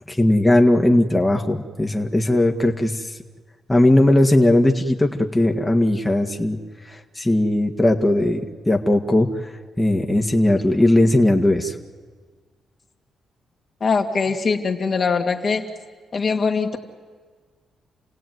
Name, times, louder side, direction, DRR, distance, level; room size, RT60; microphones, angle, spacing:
voice 1, 0.1-3.1 3.7-6.6 6.9-9.5 9.8-11.7, left 1 dB, 15° left, 2 dB, 1.9 m, -18 dB
voice 2, 13.8-15.6 16.1-16.8, left 4 dB, 50° left, 2 dB, 2.3 m, -22 dB
29.5 x 16.5 x 9.5 m, 1.5 s
supercardioid pair, 60°, 0 cm